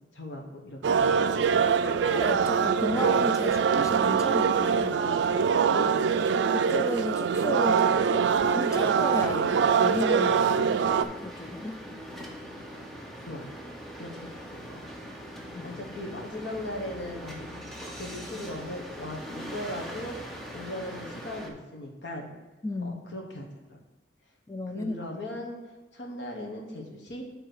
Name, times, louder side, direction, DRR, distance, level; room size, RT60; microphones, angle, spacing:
voice 1, 0.1-1.3 5.7-6.1 9.2-9.5 13.2-13.5 13.9-15.0 15.6-22.3 22.8-23.8 24.7-25.6 25.9-27.2, left 1 dB, 75° left, 1 dB, 1.3 m, -39 dB
sound 1, 0.8-11.0, right 6 dB, 75° right, 0.3 m, -24 dB
voice 2, 1.8-5.0 6.5-9.4 9.8-11.8 15.5-15.8 22.6-23.0 24.5-25.0, left 1 dB, 15° left, 8 dB, 0.3 m, -34 dB
sound 2, 8.7-21.5, equal, ahead, 0.7 m, -41 dB
8.1 x 3.2 x 6.1 m, 1.2 s
head